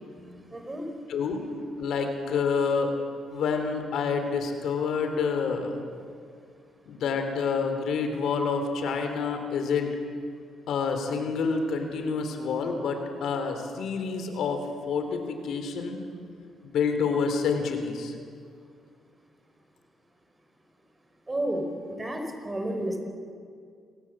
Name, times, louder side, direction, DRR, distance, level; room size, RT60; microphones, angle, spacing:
voice 1, 0.2-0.9 21.3-21.7 22.0-23.0, right 1 dB, 20° right, 4 dB, 4.7 m, -31 dB
voice 2, 1.1-1.4 1.8-2.9 3.3-5.8 6.9-10.0 10.7-16.0 16.6-18.1, left 5 dB, 75° left, 6 dB, 3.6 m, -28 dB
28.0 x 18.5 x 7.6 m, 2.3 s
cardioid pair, 90°, 0 cm